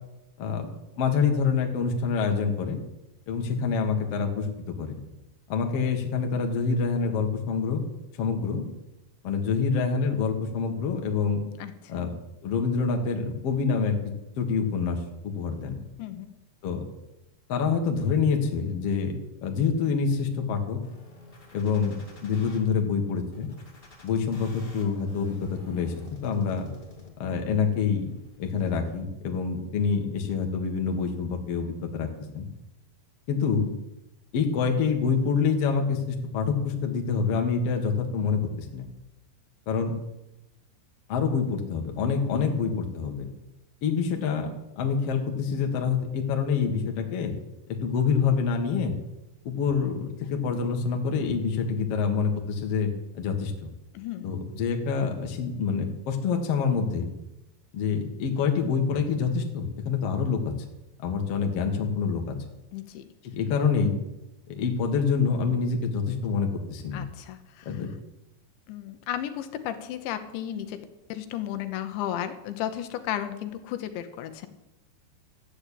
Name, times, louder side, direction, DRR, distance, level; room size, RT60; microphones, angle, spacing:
voice 1, 1.0-2.8 3.3-5.0 5.5-7.8 8.2-8.6 9.2-11.4 11.9-12.1 12.4-14.0 14.4-15.8 16.6-16.8 17.5-19.1 19.4-20.8 21.5-22.0 22.2-23.5 24.0-25.9 26.2-26.7 27.2-28.1 28.4-32.1 32.3-32.5 33.3-33.7 34.3-38.9 39.7-39.9 41.1-43.3 43.8-47.3 47.7-48.9 49.4-53.7 54.2-57.0 57.7-60.5 61.0-62.3 63.2-64.0 64.5-67.0 67.6-67.9, left 5 dB, 55° left, 3 dB, 1.7 m, -26 dB
voice 2, 11.6-12.1 16.0-16.3 42.3-42.6 53.9-54.5 62.7-63.0 66.9-67.8 68.7-74.5, left 11 dB, 85° left, 9 dB, 3.3 m, -34 dB
sound 1, 20.8-22.6 23.3-27.3 27.8-28.8, left 3 dB, 25° left, 1.2 m, -50 dB
13.0 x 8.7 x 8.5 m, 0.94 s
omnidirectional pair, 5.2 m